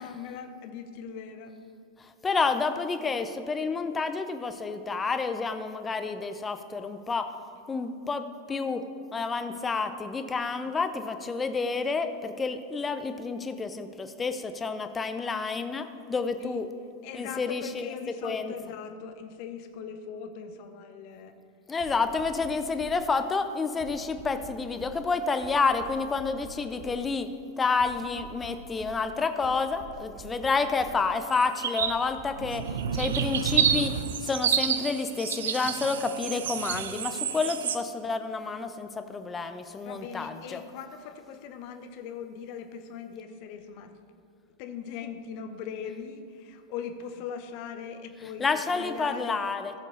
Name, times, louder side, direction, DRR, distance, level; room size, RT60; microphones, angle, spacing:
voice 1, 0.0-1.6 16.4-16.6 17.0-21.4 39.8-43.9 44.6-49.4, left 7 dB, 45° left, 8 dB, 0.8 m, -40 dB
voice 2, 2.0-7.3 7.7-8.8 9.1-16.7 17.1-17.9 18.2-18.5 21.7-27.3 27.6-32.6 32.9-33.9 34.2-40.6 48.4-49.7, left 4 dB, 15° left, 9 dB, 0.6 m, -29 dB
sound 1, 21.8-23.1 23.8-25.1 25.4-27.1 27.8-29.1 29.4-31.1 31.8-33.1, right 6 dB, 40° right, 1.0 m, -47 dB
sound 2, 31.3-32.0 32.4-37.8, right 8 dB, 60° right, 0.5 m, -29 dB
15.0 x 7.5 x 3.3 m, 2.5 s
figure-of-eight pair, 90°, 0 cm